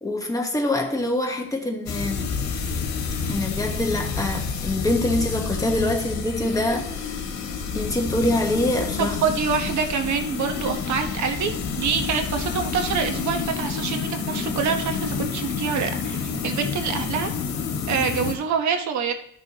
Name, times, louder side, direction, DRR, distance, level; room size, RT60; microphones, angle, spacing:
voice 1, 0.0-2.3 3.3-7.3 7.7-9.1, left 1 dB, 10° left, 1 dB, 1.3 m, -25 dB
sound 1, 1.9-18.3, left 5 dB, 70° left, 1.7 m, -29 dB
voice 2, 9.0-17.3 17.9-19.1, right 6 dB, 75° right, 6 dB, 1.2 m, -26 dB
12.0 x 6.3 x 2.9 m, 0.68 s
cardioid pair, 145°, 29 cm